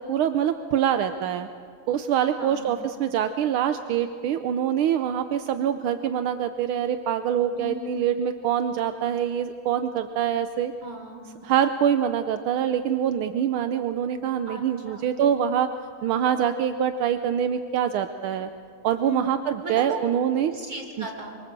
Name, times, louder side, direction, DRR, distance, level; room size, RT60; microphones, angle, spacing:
voice 1, 0.0-1.5 1.9-10.7 11.4-15.7 16.0-18.5 18.8-20.5 21.0-21.1, right 9 dB, 80° right, 8 dB, 1.6 m, -25 dB
voice 2, 2.4-2.7 7.5-8.0 10.8-11.2 14.5-15.1 19.0-19.4 19.6-20.0 20.5-21.4, right 2 dB, 40° right, 2 dB, 4.5 m, -36 dB
26.5 x 24.0 x 7.5 m, 2.3 s
omnidirectional pair, 2.3 m